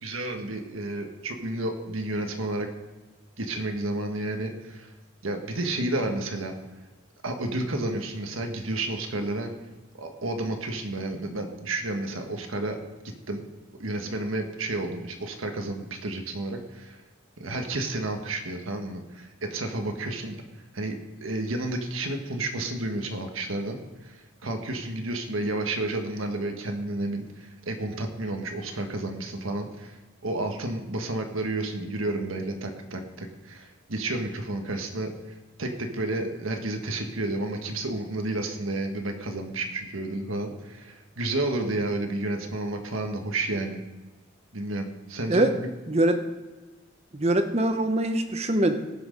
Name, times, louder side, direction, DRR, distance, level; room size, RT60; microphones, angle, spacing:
voice 1, 0.0-2.7 3.4-4.9 5.2-6.5 7.2-9.5 10.0-12.8 13.3-13.4 13.8-17.0 17.4-20.4 20.7-24.1 24.4-30.0 30.2-35.1 35.6-43.8 44.5-45.7, right 2 dB, 85° right, 4 dB, 1.5 m, -31 dB
voice 2, 45.9-46.2 47.1-48.8, right 1 dB, 30° right, 7 dB, 0.9 m, -23 dB
18.0 x 6.2 x 5.2 m, 1.2 s
head